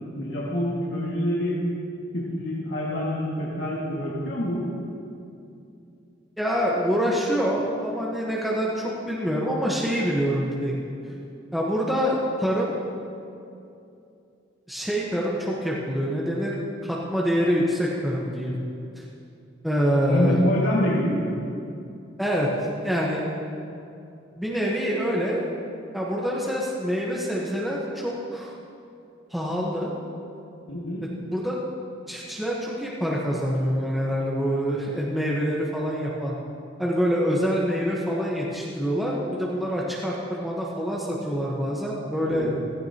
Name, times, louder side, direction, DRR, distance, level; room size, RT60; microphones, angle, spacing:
voice 1, 0.1-1.6 2.1-4.6 20.1-21.3 30.7-31.1 42.2-42.6, equal, 75° left, -7 dB, 2.1 m, -26 dB
voice 2, 6.4-10.7 11.5-12.7 14.7-16.5 16.8-18.5 19.0-19.1 19.6-20.3 22.2-22.5 22.8-23.2 24.3-25.5 25.9-28.5 29.3-29.9 31.3-31.6 32.1-36.3 36.8-42.5, equal, ahead, -5 dB, 1.2 m, -26 dB
16.0 x 15.0 x 2.9 m, 2.6 s
head